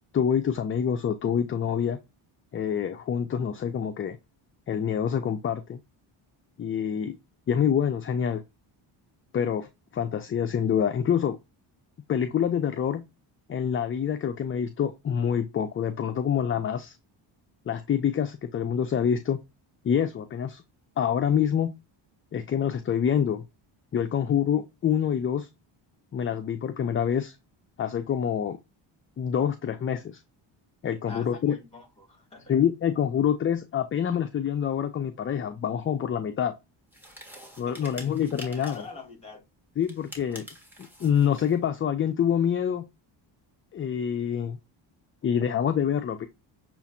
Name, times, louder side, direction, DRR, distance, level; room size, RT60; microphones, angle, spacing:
voice 1, 0.1-2.0 2.5-4.2 4.7-5.8 6.6-7.2 7.5-8.4 9.3-11.4 12.1-13.1 13.5-16.9 17.7-19.4 19.8-20.6 21.0-21.7 22.3-23.4 23.9-25.5 26.1-27.4 27.8-28.6 29.2-30.2 30.8-31.6 32.5-36.5 37.6-38.9 39.8-40.5 40.8-42.9 43.7-44.6 45.2-46.3, left 8 dB, 30° left, 0.4 m, -26 dB
voice 2, 31.1-32.5 37.3-37.4 37.7-38.1 38.5-39.4, left 3 dB, 15° left, 2.3 m, -45 dB
sound 1, 36.9-39.0 39.8-41.6, equal, 5° right, 1.6 m, -46 dB
6.9 x 2.5 x 2.6 m
cardioid pair, 100°, 47 cm